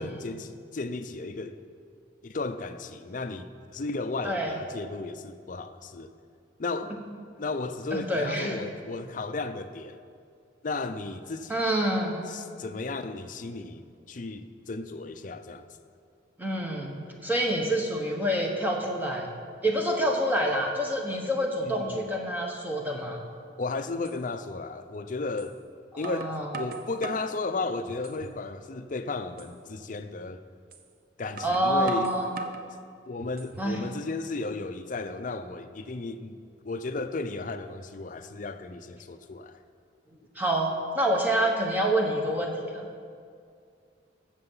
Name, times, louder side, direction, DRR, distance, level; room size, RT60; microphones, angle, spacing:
voice 1, 0.0-1.6 2.2-6.1 6.6-7.0 7.4-10.0 10.6-11.7 12.3-15.6 21.6-22.1 23.6-25.6 26.0-30.4 31.2-32.1 33.1-36.4 36.7-39.5, left 3 dB, 45° left, 0.6 m, -34 dB
voice 2, 4.2-4.6 7.9-8.6 11.5-12.2 16.4-19.3 19.6-23.2 25.9-26.5 31.4-32.3 33.6-33.8 40.3-42.9, right 1 dB, 10° right, 1.3 m, -27 dB
sound 1, 24.0-24.2 25.4-25.5 26.0-27.4 27.9-28.4 28.8-28.9 29.4-29.5 30.7-30.8 31.4-32.7 33.2-33.7, right 3 dB, 55° right, 0.7 m, -40 dB
15.0 x 6.8 x 5.6 m
head